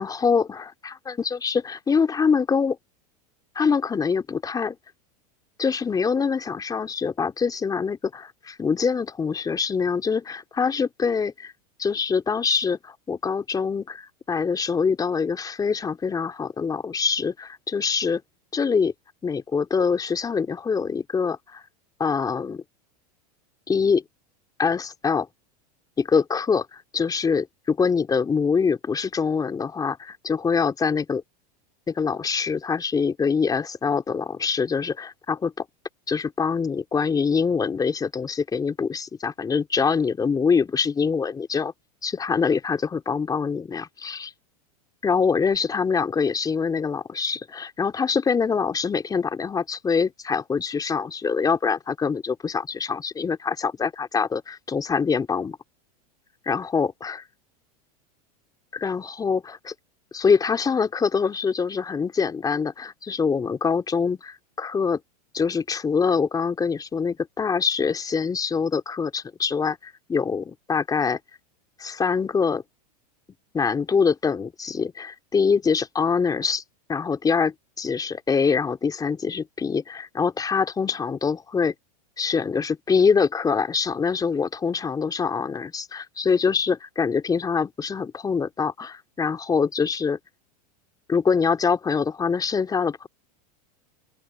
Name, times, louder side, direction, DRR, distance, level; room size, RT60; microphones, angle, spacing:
voice 1, 0.0-2.8 3.6-4.8 5.6-11.5 11.8-18.2 18.5-18.9 19.2-21.6 22.0-22.6 23.7-24.0 24.6-25.3 26.0-31.2 31.9-35.6 36.1-41.7 42.0-44.3 45.0-55.6 56.5-57.2 58.7-59.7 60.1-65.0 65.3-71.2 71.8-72.6 73.5-76.6 76.9-81.7 82.2-90.2 91.1-93.1, left 5 dB, 20° left, 3.7 m, -24 dB
open air
hypercardioid pair, 115°, 20 cm